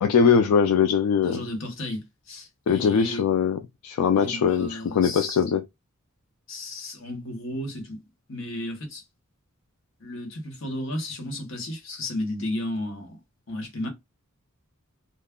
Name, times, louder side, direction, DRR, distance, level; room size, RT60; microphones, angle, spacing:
voice 1, 0.0-1.4 2.7-5.6, left 6 dB, 85° left, 0.3 m, -21 dB
voice 2, 1.2-3.2 4.1-5.4 6.5-8.0 8.3-9.0 10.0-13.2 13.5-13.9, left 1 dB, 65° left, 1.0 m, -33 dB
2.2 x 2.0 x 3.6 m
head